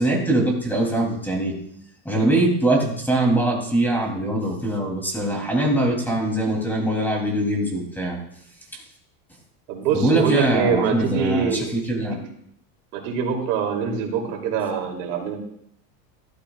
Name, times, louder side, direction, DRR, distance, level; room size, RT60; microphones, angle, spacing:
voice 1, 0.0-1.5 2.0-8.2 9.9-12.2, right 1 dB, 5° left, -1 dB, 3.0 m, -22 dB
voice 2, 9.7-11.7 12.0-12.2 12.9-15.4, right 6 dB, 80° right, 0 dB, 3.1 m, -24 dB
14.5 x 13.0 x 2.4 m, 0.71 s
supercardioid pair, 140°, 46 cm